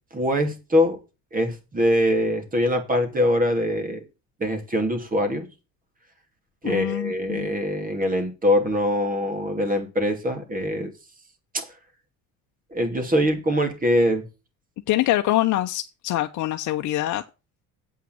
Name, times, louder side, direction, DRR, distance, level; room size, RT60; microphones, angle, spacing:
voice 1, 0.1-1.0 1.3-4.0 4.4-5.5 6.6-10.9 11.5-11.6 12.7-14.2, equal, 25° right, 2.9 m, -23 dB
voice 2, 6.6-7.5 14.9-17.2, left 15 dB, 60° left, 0.8 m, -24 dB
8.3 x 5.8 x 7.7 m
cardioid pair, 100°, 34 cm